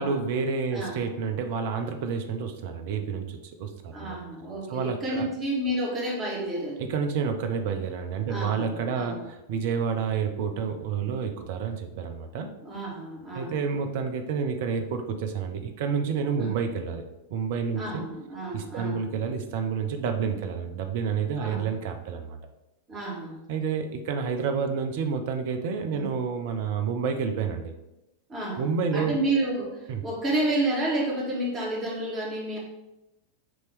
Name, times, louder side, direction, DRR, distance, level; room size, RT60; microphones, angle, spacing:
voice 1, 0.0-4.2 4.7-5.3 6.8-12.5 13.3-17.1 17.3-18.0 18.5-22.4 23.5-27.7 28.6-29.2 29.9-30.0, right 6 dB, 50° right, 6 dB, 0.7 m, -29 dB
voice 2, 0.7-1.0 3.9-6.8 8.3-9.3 12.6-13.6 16.3-16.5 17.7-19.1 21.3-21.6 22.9-23.4 25.9-26.1 28.3-32.6, right 1 dB, 25° right, -3 dB, 1.8 m, -30 dB
6.2 x 3.0 x 5.0 m, 0.95 s
figure-of-eight pair, 90°, 0 cm